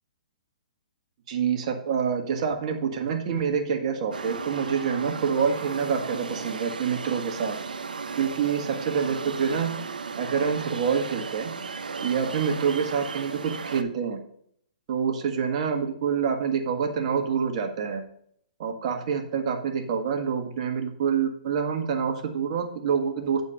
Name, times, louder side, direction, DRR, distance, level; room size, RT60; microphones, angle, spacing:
voice 1, 1.3-7.6 8.2-9.7 10.2-11.5 12.0-14.2 14.9-18.0 18.6-23.4, right 6 dB, 45° right, 4 dB, 1.5 m, -27 dB
sound 1, 4.1-13.8, right 5 dB, 90° right, 0.7 m, -35 dB
8.5 x 4.4 x 5.5 m, 0.67 s
hypercardioid pair, 140°, 5 cm